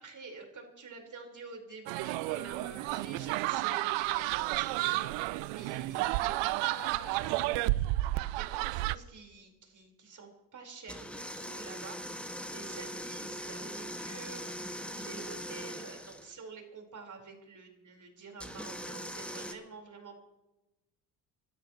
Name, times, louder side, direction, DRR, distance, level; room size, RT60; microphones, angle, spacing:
voice 1, 0.0-6.4 6.6-7.6 8.0-20.2, right 4 dB, 40° right, 2 dB, 4.6 m, -48 dB
sound 1, 1.9-9.0, right 18 dB, 70° right, 0.6 m, -31 dB
sound 2, 10.9-16.3 18.4-19.5, equal, 5° left, 1.8 m, -41 dB
29.5 x 12.5 x 3.1 m, 1.0 s
hypercardioid pair, 60°, 45 cm